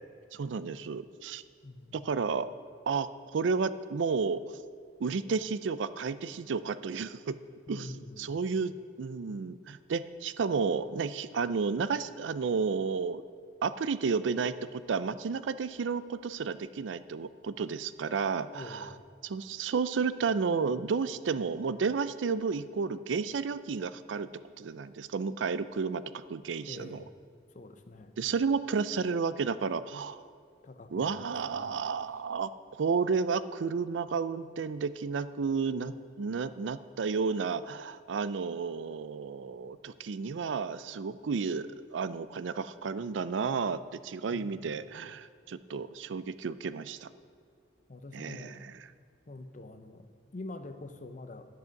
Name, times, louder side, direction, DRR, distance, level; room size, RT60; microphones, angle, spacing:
voice 1, 0.3-1.4 1.9-2.5 2.9-4.4 5.0-7.4 7.7-13.2 13.6-18.9 19.2-24.3 24.6-27.0 28.2-30.2 30.9-47.1 48.1-48.8, right 5 dB, 85° right, 14 dB, 0.4 m, -32 dB
voice 2, 1.6-2.0 7.7-8.4 18.5-19.1 26.7-27.1 27.5-28.1 30.6-31.9 44.3-44.9 47.9-48.6 49.3-51.5, left 2 dB, 40° left, 9 dB, 0.7 m, -46 dB
10.5 x 9.4 x 5.9 m, 2.2 s
head